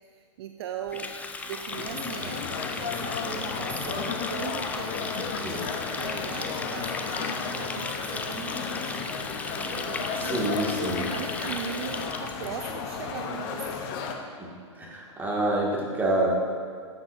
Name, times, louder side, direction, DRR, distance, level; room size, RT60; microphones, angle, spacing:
voice 1, 0.1-1.1 1.4-5.7 6.0-10.5 11.0-14.0, right 9 dB, 50° right, 5 dB, 0.5 m, -40 dB
Water tap faucet, 0.9-12.5, left 3 dB, 10° left, 0.4 m, -36 dB
sound 1, 1.7-14.2, left 5 dB, 40° left, 0.8 m, -34 dB
voice 2, 2.2-2.5 5.4-5.7 10.1-11.1 14.4-14.5 14.7-16.3, right 1 dB, 10° right, -4 dB, 2.0 m, -28 dB
11.5 x 7.9 x 2.7 m, 2.1 s
figure-of-eight pair, 105°, 16 cm